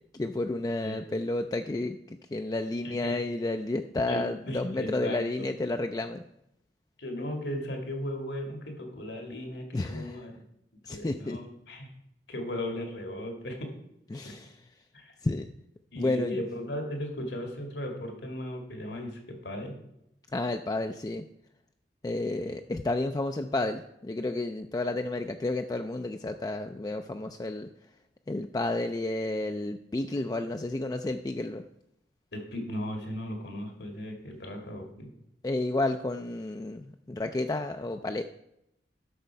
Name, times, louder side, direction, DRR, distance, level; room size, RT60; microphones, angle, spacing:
voice 1, 0.1-6.2 9.7-10.2 10.9-11.4 14.1-14.4 15.2-15.5 16.0-16.4 20.3-21.2 22.0-27.7 28.3-31.6 35.4-38.2, left 2 dB, 20° left, 6 dB, 0.3 m, -31 dB
voice 2, 4.1-5.5 7.0-10.4 10.9-11.9 12.3-13.7 14.2-14.3 14.9-15.1 15.9-19.7 32.3-35.1, left 1 dB, 80° left, 3 dB, 1.9 m, -37 dB
11.0 x 6.6 x 4.5 m, 0.81 s
head